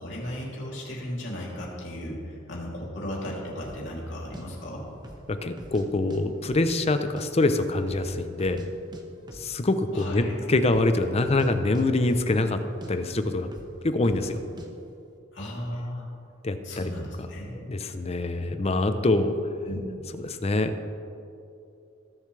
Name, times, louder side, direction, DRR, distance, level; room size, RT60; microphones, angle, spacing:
voice 1, 0.0-4.8 9.9-10.3 15.3-16.1 16.6-17.5 19.6-19.8, equal, 75° left, -4 dB, 2.9 m, -35 dB
sound 1, 3.6-3.9 4.3-4.4 5.0-5.3 5.6-6.2 6.5-7.3 7.5-7.6 7.9-8.7 8.9-9.0 9.3-9.5 9.8-10.1 10.6-10.9 11.2-11.5 11.7-12.5 12.8-12.9 13.5-13.7 14.0-14.3 14.6-14.7, right 1 dB, 20° right, 1.0 m, -44 dB
voice 2, 5.3-8.6 9.4-12.6 12.9-13.5 13.8-14.4 16.4-16.8 17.7-19.4 20.2-20.7, left 2 dB, 35° left, 9 dB, 0.6 m, -25 dB
20.0 x 7.0 x 3.3 m, 2.6 s
head